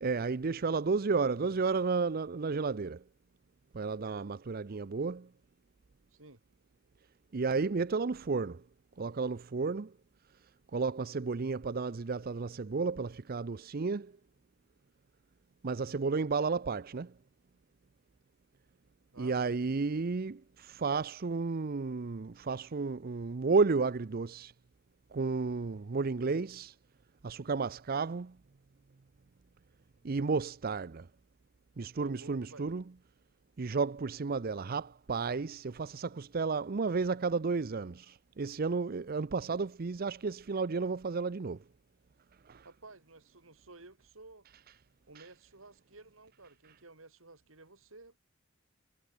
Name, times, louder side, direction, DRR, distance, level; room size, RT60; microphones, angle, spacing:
voice 1, 0.0-3.0 3.7-5.3 7.3-8.6 9.0-9.9 10.7-14.1 15.6-17.1 19.2-24.5 25.1-26.7 27.2-28.3 30.0-31.0 31.8-32.8 33.6-41.6 42.5-42.6, right 4 dB, 45° right, 0.6 m, -32 dB
voice 2, 6.1-6.4 19.1-19.6 32.0-32.7 42.6-44.5 45.1-48.2, right 3 dB, 75° right, 3.5 m, -54 dB
head